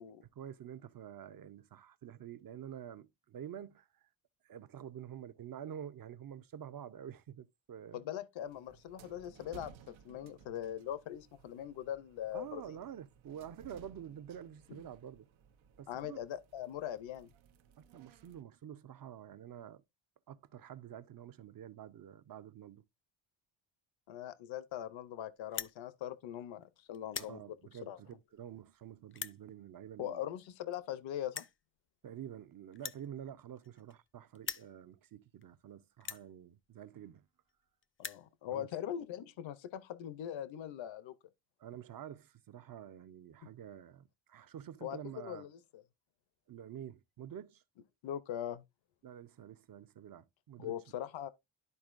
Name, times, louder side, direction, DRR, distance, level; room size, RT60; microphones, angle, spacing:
voice 1, 0.2-4.0 4.4-8.1 12.3-15.3 15.8-16.2 17.8-19.8 20.3-22.8 27.3-30.2 32.0-37.3 38.5-38.7 41.6-45.5 46.5-47.6 49.0-50.7, right 9 dB, 50° right, 0.7 m, -48 dB
voice 2, 7.9-12.8 14.7-14.8 15.9-17.3 24.1-27.6 27.9-28.0 30.0-31.4 38.0-41.1 44.8-45.8 48.0-48.6 50.6-51.3, left 11 dB, 75° left, 0.7 m, -41 dB
sound 1, 8.4-18.4, right 6 dB, 85° right, 0.9 m, -60 dB
sound 2, 25.4-25.8 26.4-26.6 26.9-27.4 28.1-28.2 29.1-29.4 30.4-30.5 30.7-30.8 31.3-31.6 32.7-34.1 34.3-34.7 35.4-35.5 36.0-36.3 37.2-37.3 37.5-37.6 37.8-38.3, left 7 dB, 30° left, 0.5 m, -42 dB
12.0 x 4.4 x 2.5 m
cardioid pair, 115°, 46 cm